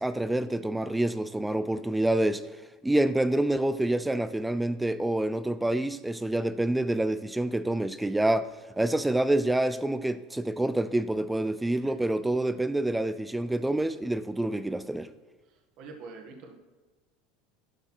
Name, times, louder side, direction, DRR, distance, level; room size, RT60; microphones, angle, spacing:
voice 1, 0.0-2.4 2.8-8.5 8.8-15.1, right 1 dB, 5° right, 0.4 m, -27 dB
voice 2, 15.4-16.5, right 4 dB, 50° right, 1.7 m, -46 dB
11.5 x 6.7 x 4.5 m
supercardioid pair, 150°, 0 cm